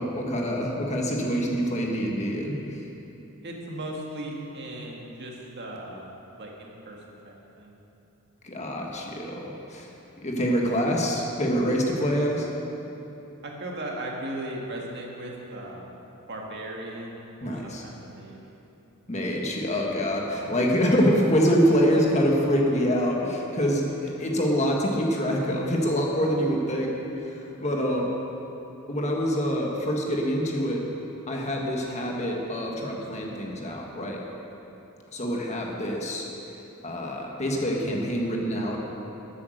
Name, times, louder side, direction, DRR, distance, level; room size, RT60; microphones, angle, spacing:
voice 1, 0.0-2.8 8.4-9.9 10.2-12.5 17.4-17.8 19.1-26.9 27.2-28.1 28.9-30.8 31.3-34.2 35.1-36.2 36.8-38.8, equal, 30° left, -1 dB, 1.6 m, -25 dB
voice 2, 3.4-7.8 13.4-16.0 16.3-18.4, right 1 dB, 50° right, -1 dB, 1.9 m, -37 dB
14.0 x 8.6 x 6.5 m, 3.0 s
head